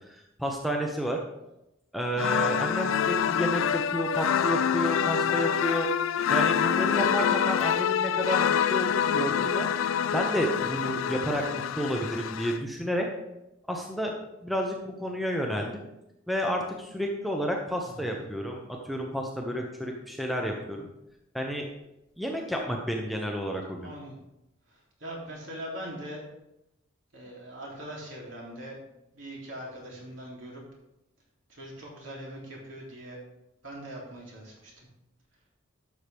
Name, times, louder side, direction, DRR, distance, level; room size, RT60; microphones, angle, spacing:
voice 1, 0.1-1.2 1.9-5.9 6.3-9.7 10.1-13.1 13.7-14.1 14.4-15.8 16.3-20.9 21.3-21.7 22.2-23.9, equal, ahead, 1 dB, 0.8 m, -31 dB
sound 1, 2.2-12.6, left 8 dB, 80° left, 0.3 m, -26 dB
voice 2, 17.8-18.2 23.8-24.2 24.7-26.2 27.1-28.8 29.1-30.6 31.5-33.2 33.6-34.9, right 1 dB, 70° right, -3 dB, 3.1 m, -41 dB
12.0 x 6.5 x 3.5 m, 0.89 s
head